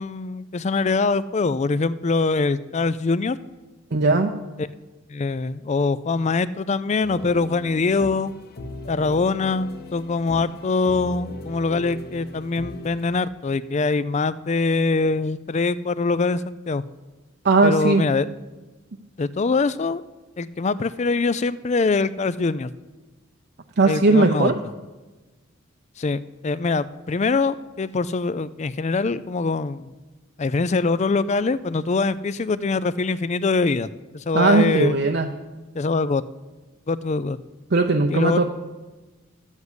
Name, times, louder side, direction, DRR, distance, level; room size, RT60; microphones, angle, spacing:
voice 1, 0.0-3.4 4.6-4.7 5.1-8.3 8.9-16.8 17.6-18.3 19.2-20.0 20.4-22.7 23.9-24.5 26.0-29.9 30.4-33.9 34.1-35.0 35.8-36.2 36.9-37.4 38.1-38.5, left 3 dB, 35° left, 16 dB, 0.4 m, -23 dB
voice 2, 3.9-4.3 17.4-18.1 23.8-24.6 34.3-35.3 37.7-38.5, right 3 dB, 55° right, 3 dB, 0.7 m, -18 dB
sound 1, 7.0-13.2, left 2 dB, 50° left, 0.9 m, -39 dB
12.5 x 7.3 x 8.1 m, 1.2 s
head